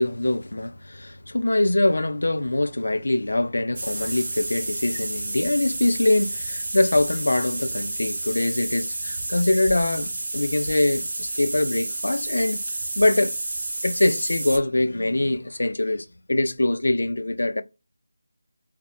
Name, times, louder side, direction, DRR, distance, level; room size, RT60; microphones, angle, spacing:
voice 1, 0.0-12.6 13.0-13.4 13.8-17.6, left 2 dB, 80° left, 0.3 m, -23 dB
sound 1, 3.7-14.6, right 2 dB, 40° right, 0.7 m, -31 dB
2.9 x 2.0 x 2.2 m
figure-of-eight pair, 175°, 0 cm